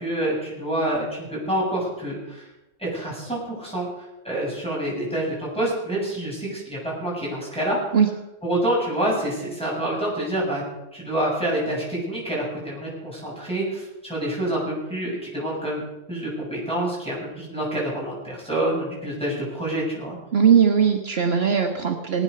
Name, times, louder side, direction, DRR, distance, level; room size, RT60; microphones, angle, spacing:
voice 1, 0.0-2.5 2.8-3.9 4.2-7.8 8.4-10.6 10.9-15.8 16.1-20.1, right 1 dB, 5° left, -5 dB, 7.5 m, -27 dB
voice 2, 20.3-22.2, right 7 dB, 60° right, 3 dB, 1.3 m, -19 dB
19.0 x 9.5 x 6.8 m, 0.98 s
omnidirectional pair, 1.2 m